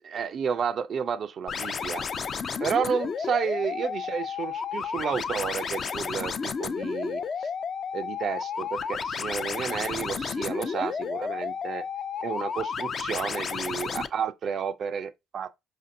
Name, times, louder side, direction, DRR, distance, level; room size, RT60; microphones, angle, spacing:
voice 1, 0.0-2.1 2.6-7.2 7.9-11.8 12.2-15.6, right 7 dB, 55° right, 0.3 m, -31 dB
sound 1, 1.5-14.1, left 6 dB, 50° left, 0.3 m, -32 dB
5.0 x 2.5 x 2.5 m
supercardioid pair, 70°, 0 cm